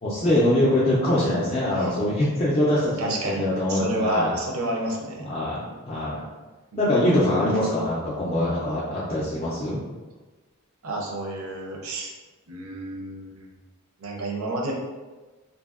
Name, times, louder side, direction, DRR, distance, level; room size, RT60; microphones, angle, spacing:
voice 1, 0.0-4.3 5.3-6.2 6.8-9.8, left 1 dB, 30° left, -8 dB, 0.4 m, -23 dB
voice 2, 3.0-3.4 3.7-5.3 6.7-6.8 10.8-12.1 12.5-13.5 14.0-14.7, right 2 dB, 75° right, -1 dB, 0.6 m, -30 dB
2.6 x 2.6 x 2.4 m, 1.2 s
head